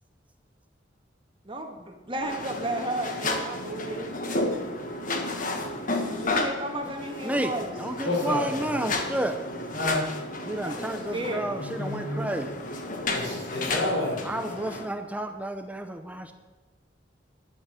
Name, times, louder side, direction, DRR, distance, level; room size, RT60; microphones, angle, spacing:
voice 1, 1.4-4.3 6.2-7.7 10.6-11.4, right 1 dB, 30° right, 3 dB, 1.6 m, -34 dB
sound 1, 2.2-14.9, left 2 dB, 45° left, 1.5 m, -32 dB
voice 2, 7.2-9.4 10.4-12.5 14.2-16.3, right 1 dB, 10° right, 7 dB, 0.6 m, -31 dB
voice 3, 8.0-8.8 9.7-10.0 13.1-14.3, left 2 dB, 75° left, -2 dB, 5.3 m, -29 dB
11.5 x 7.6 x 8.8 m, 1.3 s
head